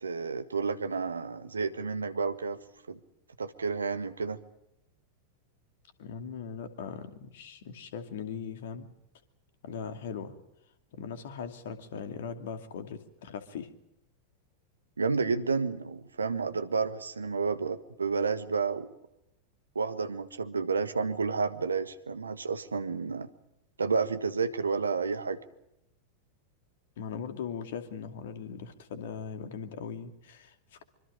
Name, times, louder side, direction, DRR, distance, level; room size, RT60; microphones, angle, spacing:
voice 1, 0.0-2.6 2.9-3.0 3.4-4.4 15.0-18.9 19.7-23.3 23.8-25.4, right 4 dB, 75° right, 11 dB, 1.5 m, -30 dB
voice 2, 6.0-8.9 9.6-10.4 10.9-13.7 27.0-30.8, left 6 dB, 55° left, 8 dB, 2.5 m, -39 dB
25.5 x 25.0 x 5.2 m, 0.84 s
figure-of-eight pair, 90°, 0 cm